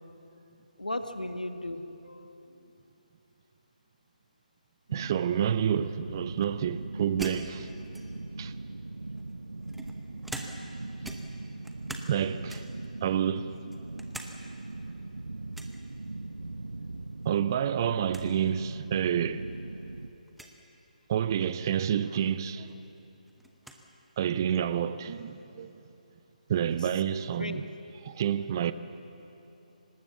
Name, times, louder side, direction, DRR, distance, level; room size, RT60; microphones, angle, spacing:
voice 1, 0.8-2.7 27.4-27.6, left 1 dB, 75° left, 1.7 m, -36 dB
voice 2, 4.9-7.7 8.4-8.5 12.1-12.6 13.0-13.6 17.3-19.4 21.1-22.7 24.2-25.7 26.5-27.6 28.1-28.7, right 9 dB, 30° right, 0.6 m, -29 dB
sound 1, 4.9-20.1, right 2 dB, 70° right, 0.8 m, -40 dB
sound 2, 7.2-8.4 9.2-10.8 11.0-12.2 12.5-12.9 13.4-14.3 14.7-14.8 15.5-15.8 17.2-17.6 17.8-17.9 18.1-18.3 19.1-19.2 20.3-20.6 22.2-22.3 22.7-23.8, right 1 dB, ahead, 0.9 m, -44 dB
24.5 x 19.5 x 7.2 m
figure-of-eight pair, 145°, 4 cm